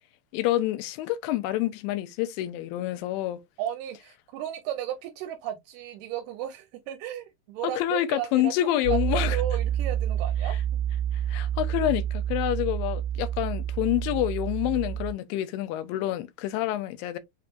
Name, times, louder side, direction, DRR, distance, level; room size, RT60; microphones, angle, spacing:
voice 1, 0.3-3.4 7.8-9.4 11.3-17.2, left 14 dB, 85° left, 2.4 m, -27 dB
voice 2, 3.6-8.5 8.9-10.6, right 11 dB, 80° right, 2.1 m, -34 dB
Piano, 8.8-15.1, right 10 dB, 20° left, 0.8 m, -28 dB
5.9 x 2.5 x 2.4 m
omnidirectional pair, 4.0 m